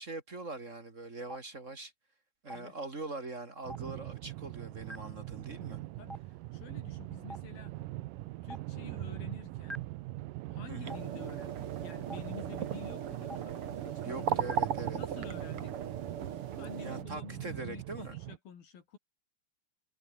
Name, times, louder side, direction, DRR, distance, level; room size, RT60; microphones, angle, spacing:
voice 1, 0.0-1.9 2.4-5.8 10.7-11.0 14.0-15.0 16.8-18.2, right 3 dB, 25° right, 2.0 m, -42 dB
Stream, 1.3-1.4 2.5-2.6 3.7-3.8 4.9-5.0 6.1-6.2 7.3-7.4 8.5-8.6 9.7-9.8 10.9-11.0 12.1-12.2 13.3-13.4 14.5-14.6, equal, ahead, 3.9 m, -40 dB
sound 1, 3.6-18.4, right 18 dB, 80° right, 2.0 m, -42 dB
voice 2, 6.5-7.8 8.4-9.8 10.5-14.4 14.9-15.8 16.6-19.0, left 7 dB, 65° left, 4.7 m, -49 dB
sound 2, 10.9-17.0, right 8 dB, 50° right, 1.7 m, -37 dB
omnidirectional pair, 4.7 m